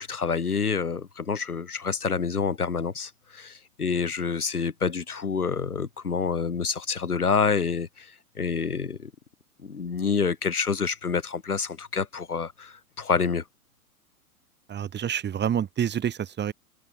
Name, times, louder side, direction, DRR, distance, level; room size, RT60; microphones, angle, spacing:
voice 1, 0.0-8.1 8.4-9.1 9.6-13.4, left 5 dB, 90° left, 7.3 m, -27 dB
voice 2, 14.7-16.5, right 9 dB, 25° right, 8.0 m, -28 dB
open air
hypercardioid pair, 110°, 43 cm